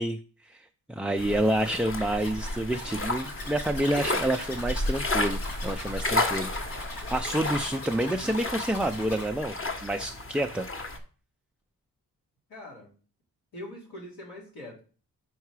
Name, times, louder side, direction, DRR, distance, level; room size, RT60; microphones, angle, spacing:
voice 1, 0.0-9.5 9.8-10.7, right 1 dB, 5° right, 5 dB, 0.4 m, -29 dB
sound 1, 1.2-11.0, left 2 dB, 35° left, 1.2 m, -32 dB
Zipper (clothing), 2.2-9.3, left 2 dB, 65° left, 1.7 m, -41 dB
voice 2, 12.5-12.9 13.5-14.8, left 1 dB, 85° left, -3 dB, 3.1 m, -43 dB
5.5 x 4.7 x 4.8 m, 0.39 s
cardioid pair, 65°, 37 cm